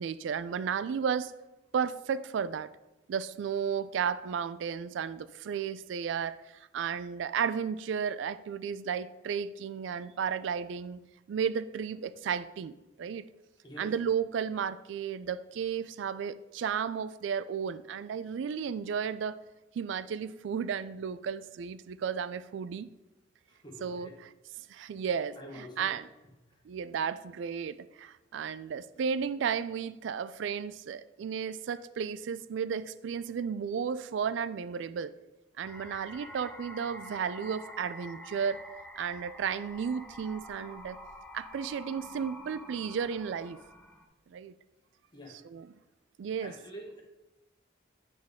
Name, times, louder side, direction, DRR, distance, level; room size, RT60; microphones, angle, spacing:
voice 1, 0.0-1.3 1.7-2.7 3.1-6.4 6.7-11.0 11.3-12.7 13.0-13.3 13.8-19.4 19.7-22.9 23.8-24.3 24.7-26.1 26.7-35.1 35.6-38.6 39.0-41.0 41.3-43.6 44.3-44.5 45.5-45.7 46.2-46.5, right 7 dB, 75° right, 15 dB, 0.3 m, -33 dB
voice 2, 13.6-14.1 23.5-24.2 25.4-25.9 26.5-26.6 45.1-45.4 46.4-47.0, equal, 25° left, 0 dB, 1.1 m, -47 dB
sound 1, 35.6-44.1, equal, 5° left, 0.5 m, -48 dB
8.8 x 3.9 x 3.5 m, 1.0 s
head